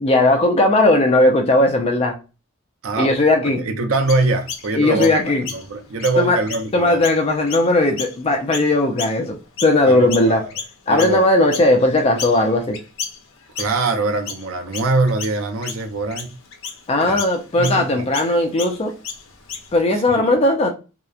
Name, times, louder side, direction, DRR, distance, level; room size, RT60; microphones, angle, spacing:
voice 1, 0.0-2.2 3.0-3.7 4.8-5.4 6.2-6.4 6.7-10.4 10.9-12.8 16.9-19.0 19.7-20.7, left 2 dB, 30° left, 0.4 m, -17 dB
voice 2, 2.8-3.2 3.6-7.1 9.8-10.5 10.9-11.3 13.6-16.3 17.0-17.2 17.6-18.1 19.9-20.4, right 3 dB, 85° right, 0.5 m, -23 dB
Chirp tweet, 4.1-9.8 10.1-19.8, left 6 dB, 75° left, 0.6 m, -34 dB
2.8 x 2.0 x 2.3 m
head